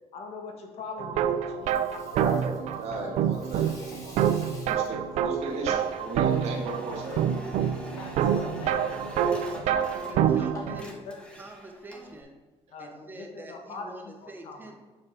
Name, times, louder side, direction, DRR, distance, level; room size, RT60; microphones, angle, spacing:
voice 1, 0.1-2.4 7.9-11.3 12.7-14.6, left 3 dB, 60° left, 2 dB, 1.7 m, -42 dB
sound 1, 1.0-10.8, right 9 dB, 80° right, 0.5 m, -27 dB
Water tap faucet / Sink (filling or washing), 1.5-11.7, left 2 dB, 30° left, 2.3 m, -50 dB
voice 2, 2.1-2.5 2.8-4.3 4.6-7.3, right 2 dB, 65° right, -1 dB, 2.2 m, -36 dB
sound 2, 5.5-10.4 10.7-12.2, equal, 10° left, 1.2 m, -46 dB
voice 3, 10.0-11.0 11.4-12.4 12.8-14.8, right 2 dB, 15° right, 2 dB, 1.2 m, -46 dB
7.0 x 6.5 x 5.9 m, 1.2 s
cardioid pair, 160°, 11 cm